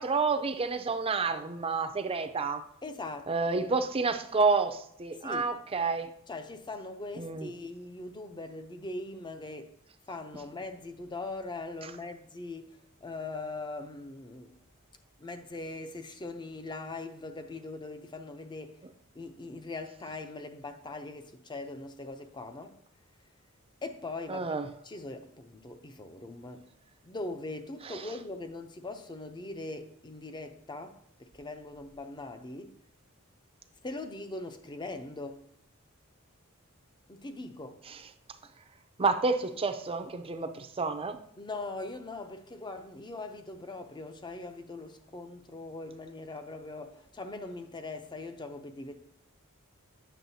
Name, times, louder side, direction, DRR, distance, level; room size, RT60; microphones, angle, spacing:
voice 1, 0.0-2.6 3.3-6.1 7.2-7.5 24.3-24.7 27.9-28.0 37.9-38.0 39.0-41.2, right 4 dB, 25° right, 0.5 m, -29 dB
voice 2, 2.8-3.7 5.2-5.5 6.3-9.7 10.1-14.5 15.2-18.8 19.1-22.8 23.8-24.5 24.8-26.7 27.0-32.8 33.8-35.5 37.1-37.8 41.4-48.9, left 2 dB, 20° left, 0.6 m, -41 dB
9.1 x 6.5 x 2.7 m
head